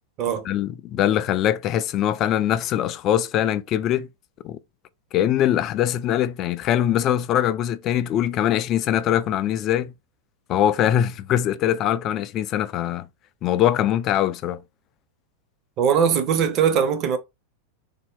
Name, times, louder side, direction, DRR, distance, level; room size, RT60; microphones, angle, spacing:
voice 1, 0.5-4.1 4.4-4.6 5.1-9.9 10.5-13.1 13.4-14.6, left 11 dB, 35° left, 0.3 m, -22 dB
voice 2, 15.8-17.2, right 7 dB, 35° right, 0.7 m, -20 dB
3.6 x 2.0 x 3.7 m
figure-of-eight pair, 90°, 0 cm